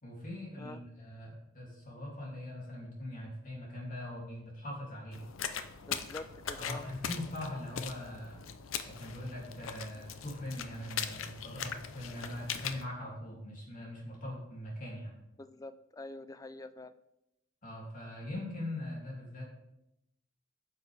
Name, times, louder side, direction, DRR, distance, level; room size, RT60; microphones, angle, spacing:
voice 1, 0.0-5.2 6.5-8.5 8.8-15.1 17.6-19.4, left 1 dB, 45° left, -3 dB, 2.7 m, -41 dB
sound 1, 5.1-12.8, left 7 dB, 90° left, 0.6 m, -40 dB
voice 2, 5.9-6.8 15.4-16.9, left 2 dB, 20° left, 13 dB, 0.3 m, -46 dB
9.3 x 6.7 x 3.4 m, 0.86 s
head